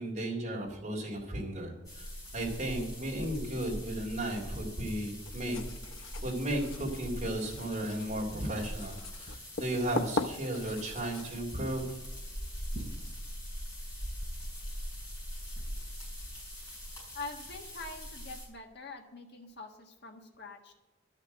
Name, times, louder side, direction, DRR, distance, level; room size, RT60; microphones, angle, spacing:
voice 1, 0.0-2.1 2.3-5.6 6.2-11.9, right 1 dB, 35° right, -2 dB, 3.5 m, -35 dB
sound 1, 1.8-18.5, equal, 20° left, 5.3 m, -42 dB
Writing, 5.2-13.4, left 3 dB, 85° left, 0.8 m, -41 dB
voice 2, 17.1-20.7, left 3 dB, 55° left, 3 dB, 1.5 m, -44 dB
12.5 x 6.7 x 7.7 m, 1.0 s
head